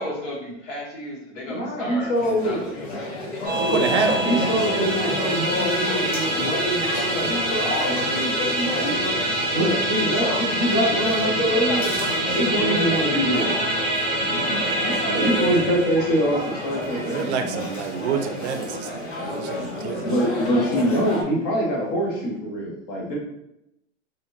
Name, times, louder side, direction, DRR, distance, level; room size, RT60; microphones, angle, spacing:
voice 1, 0.0-2.1 2.4-3.6 11.5-15.1, left 1 dB, 75° left, -4 dB, 1.3 m, -34 dB
voice 2, 1.5-2.6 3.7-3.8 4.3-9.1 9.5-11.9 12.3-13.5 14.3-14.4 14.8-17.6 20.0-23.2, equal, 20° left, -3 dB, 0.3 m, -24 dB
sound 1, 2.1-21.2, left 1 dB, 60° left, 0.9 m, -31 dB
Musical instrument, 3.4-19.0, right 1 dB, 40° right, 1.0 m, -26 dB
voice 3, 3.5-4.6 15.0-15.7 17.0-20.1, right 6 dB, 65° right, 7 dB, 0.5 m, -28 dB
2.9 x 2.6 x 2.5 m, 0.83 s
supercardioid pair, 155°, 37 cm